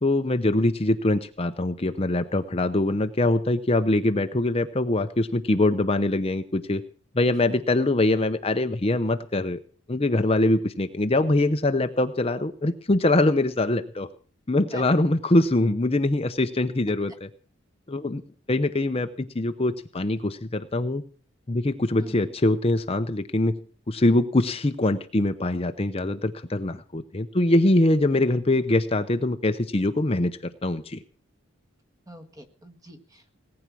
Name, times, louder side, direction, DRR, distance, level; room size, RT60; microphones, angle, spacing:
voice 1, 0.0-6.8 7.1-9.6 9.9-14.1 14.5-17.3 17.9-18.2 18.5-21.0 21.5-23.6 23.9-31.0, left 2 dB, 30° left, 8 dB, 0.7 m, -23 dB
voice 2, 22.0-22.3 32.1-33.4, equal, 15° right, 7 dB, 1.7 m, -45 dB
18.5 x 9.7 x 6.1 m, 0.42 s
head